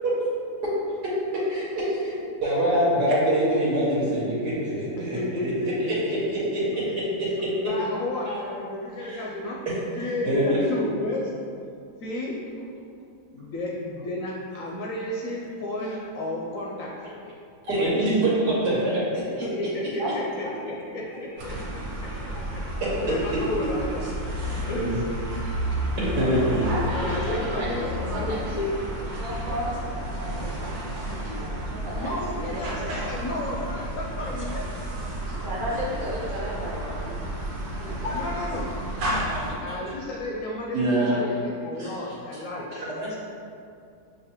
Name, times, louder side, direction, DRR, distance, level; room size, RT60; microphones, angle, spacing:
voice 1, 2.4-5.5 9.1-9.2 10.2-10.6 17.7-19.4 22.3-22.4 24.6-25.0 26.2-26.6 30.2-30.3 35.3-35.4 38.0-38.1 39.2-39.5 40.7-41.1 41.8-41.9, right 1 dB, 85° right, -7 dB, 1.6 m, -24 dB
voice 2, 5.0-7.0 7.6-9.6 10.0-11.3 12.0-12.4 13.3-17.1 17.7-18.1 19.4-22.6 22.9-24.1 24.4-25.1 25.9-28.7 31.9-34.7 38.1-38.7 39.6-43.2, left 1 dB, 70° left, -3 dB, 0.8 m, -32 dB
voice 3, 20.0-20.6 21.1-21.2 26.2-32.2 32.5-33.1 35.4-37.2 37.7-38.3, equal, 50° right, -5 dB, 0.6 m, -34 dB
sound 1, 21.4-39.5, right 1 dB, 65° right, 1.3 m, -32 dB
6.1 x 2.7 x 2.9 m, 2.4 s
omnidirectional pair, 1.8 m